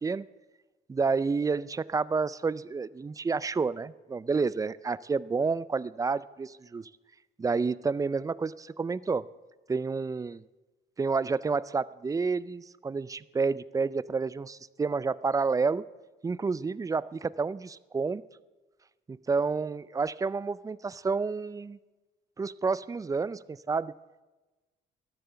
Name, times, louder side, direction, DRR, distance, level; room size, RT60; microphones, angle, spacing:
voice 1, 0.9-6.9 7.4-9.2 9.7-10.4 11.0-15.8 16.2-18.2 19.1-21.8 22.4-23.9, right 4 dB, 15° right, 20 dB, 0.3 m, -29 dB
13.0 x 7.6 x 6.8 m, 1.2 s
cardioid pair, 90°, 20 cm